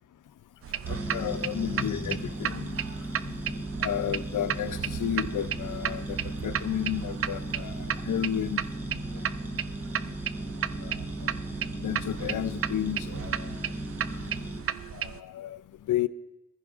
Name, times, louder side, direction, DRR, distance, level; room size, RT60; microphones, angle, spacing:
sound 1, 0.6-15.2, right 9 dB, 50° right, 0.4 m, -34 dB
voice 1, 0.9-3.0 3.2-3.4 3.8-8.6 9.1-9.3 10.7-11.3 11.8-13.6 14.9-16.1, left 10 dB, 85° left, 0.5 m, -33 dB
sound 2, 0.9-14.6, right 1 dB, 5° right, 1.2 m, -37 dB
20.5 x 14.5 x 2.5 m
wide cardioid pair, 105°, 31 cm